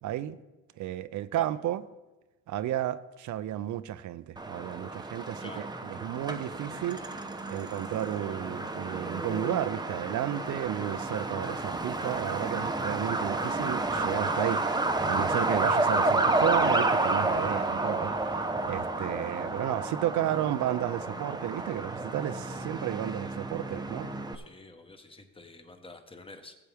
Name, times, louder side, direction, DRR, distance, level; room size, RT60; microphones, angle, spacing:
voice 1, 0.0-0.4 0.8-1.8 2.5-18.3 18.7-24.1, right 12 dB, 75° right, 0.6 m, -33 dB
Truck, 4.4-24.4, right 2 dB, 15° right, 0.9 m, -30 dB
voice 2, 24.3-26.6, left 2 dB, 20° left, 1.3 m, -48 dB
16.5 x 7.8 x 3.5 m
cardioid pair, 90°, 30 cm